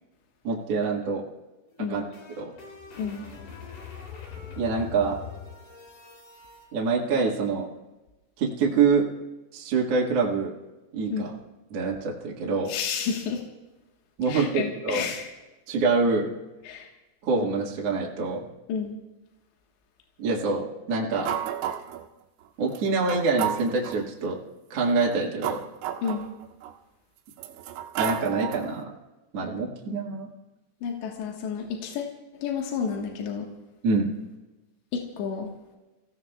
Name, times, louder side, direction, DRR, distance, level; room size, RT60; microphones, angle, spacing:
voice 1, 0.4-1.2 1.9-2.5 4.6-5.2 6.7-7.7 8.4-9.1 9.5-10.5 10.9-11.3 11.7-12.7 14.2-15.1 15.7-16.3 17.2-18.5 20.2-21.4 22.6-24.4 24.7-25.6 28.0-28.9 29.3-30.3 33.8-34.1, right 4 dB, 50° right, -2 dB, 1.9 m, -25 dB
sound 1, 1.7-6.7, left 7 dB, 60° left, 5.0 m, -43 dB
voice 2, 12.7-13.4 14.3-15.3 16.7-16.9 18.7-18.9 26.0-26.3 30.8-32.1 32.4-33.5 34.9-35.5, left 6 dB, 75° left, 0 dB, 3.7 m, -30 dB
sound 2, 21.3-22.1 22.7-22.8 23.1-24.0 24.9-26.7 27.3-28.8, right 10 dB, 90° right, 3.2 m, -32 dB
29.5 x 17.0 x 2.4 m, 1.1 s
omnidirectional pair, 5.2 m